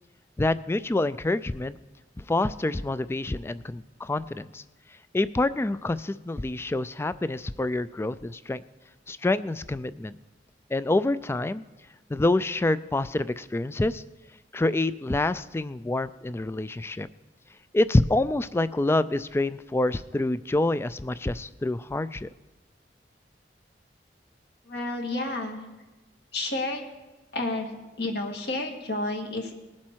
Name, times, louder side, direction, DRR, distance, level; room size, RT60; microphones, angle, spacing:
voice 1, 0.4-1.8 2.2-4.6 5.1-8.6 9.1-10.2 10.7-11.6 12.1-14.0 14.5-17.1 17.7-22.3, left 2 dB, 15° left, 16 dB, 0.3 m, -27 dB
voice 2, 24.7-25.6 26.3-26.8 27.3-27.7 28.0-29.5, left 2 dB, 70° left, 2 dB, 1.8 m, -30 dB
20.0 x 7.4 x 4.6 m, 1.1 s
head